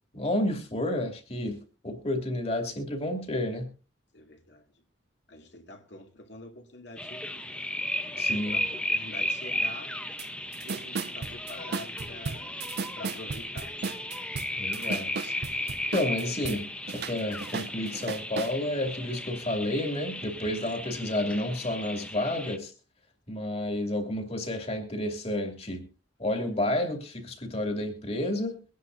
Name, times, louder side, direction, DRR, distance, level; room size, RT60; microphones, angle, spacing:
voice 1, 0.1-3.7 8.2-8.6 14.6-15.3 15.9-22.7 23.3-25.9 26.2-28.6, left 1 dB, 35° left, 2.5 m, -31 dB
voice 2, 4.1-4.8 5.3-7.7 8.0-9.9 10.6-12.6 13.0-13.9, left 2 dB, 65° left, 2.3 m, -46 dB
sound 1, 7.0-22.6, left 1 dB, 5° left, 0.8 m, -35 dB
sound 2, 10.2-10.3 10.5-16.6 16.9-18.5, right 4 dB, 60° right, 0.5 m, -35 dB
23.0 x 10.0 x 2.6 m
head